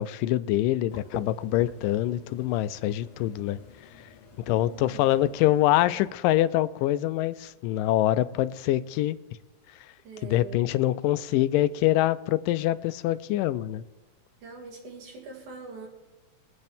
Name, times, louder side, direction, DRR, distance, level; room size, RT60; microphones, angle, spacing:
voice 1, 0.0-3.6 4.5-9.2 10.2-13.8, left 14 dB, 90° left, 14 dB, 2.2 m, -25 dB
sound 1, 0.9-6.1, left 5 dB, 60° left, 2.1 m, -45 dB
voice 2, 4.6-5.1 10.0-10.7 14.4-15.9, right 4 dB, 65° right, 0 dB, 3.5 m, -43 dB
22.0 x 8.5 x 3.5 m, 1.2 s
omnidirectional pair, 3.8 m